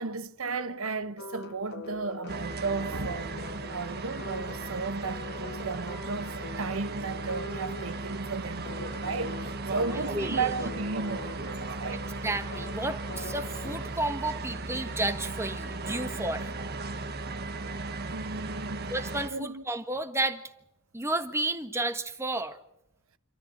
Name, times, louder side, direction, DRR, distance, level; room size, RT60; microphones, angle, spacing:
voice 1, 0.0-3.4 3.7-12.1 18.1-18.9 19.3-19.6, right 4 dB, 70° right, 1.1 m, -34 dB
sound 1, 1.2-13.9, left 3 dB, 50° left, 1.2 m, -44 dB
sound 2, 2.3-19.3, right 3 dB, 50° right, 1.4 m, -36 dB
voice 2, 9.9-10.5 11.9-16.5 18.9-20.4 20.9-22.6, right 2 dB, 15° right, 1.5 m, -32 dB
27.0 x 13.5 x 8.8 m
head